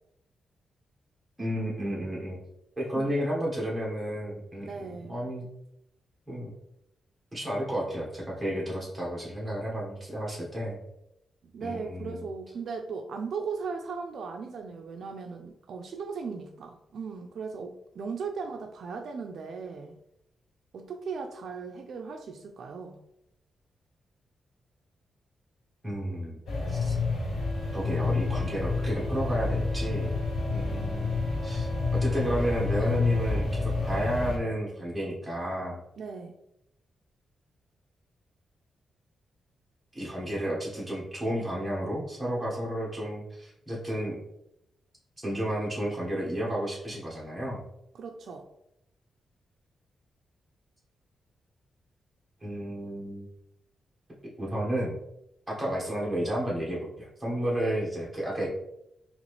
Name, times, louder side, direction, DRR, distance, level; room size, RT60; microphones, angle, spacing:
voice 1, 1.4-2.4 2.8-5.5 6.3-6.5 7.3-10.8 11.6-12.3 25.8-26.4 26.7-26.9 27.7-30.2 30.5-35.8 39.9-44.2 45.2-47.6 52.4-53.3 54.4-55.0 55.5-58.5, equal, 10° right, -5 dB, 1.4 m, -32 dB
voice 2, 4.6-5.2 11.4-20.0 20.7-23.0 36.0-36.3 47.9-48.5, right 5 dB, 65° right, 4 dB, 0.4 m, -37 dB
sound 1, 26.5-34.4, left 3 dB, 85° left, 1.3 m, -29 dB
Wind instrument woodwind instrument, 27.3-33.5, left 3 dB, 35° right, 1.2 m, -45 dB
4.0 x 3.0 x 3.3 m, 0.81 s
wide cardioid pair, 135°, 0 cm